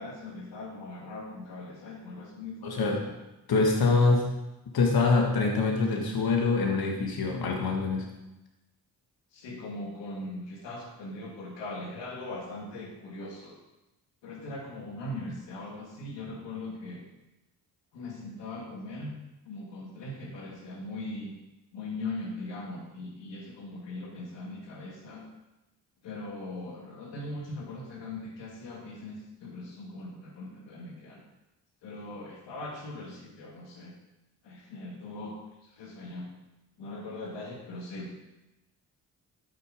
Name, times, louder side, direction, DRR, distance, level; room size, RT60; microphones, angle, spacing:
voice 1, 0.0-3.1 9.3-13.6 14.2-17.0 17.9-19.1 19.5-21.3 21.7-25.2 26.0-31.2 31.8-33.9 34.4-35.3 35.8-36.3 36.8-38.1, left 2 dB, 85° left, -1 dB, 2.1 m, -40 dB
voice 2, 2.6-3.1 3.5-4.3 4.7-8.1, left 3 dB, 60° left, 1 dB, 1.8 m, -25 dB
12.0 x 6.2 x 5.1 m, 1.0 s
supercardioid pair, 60°, 42 cm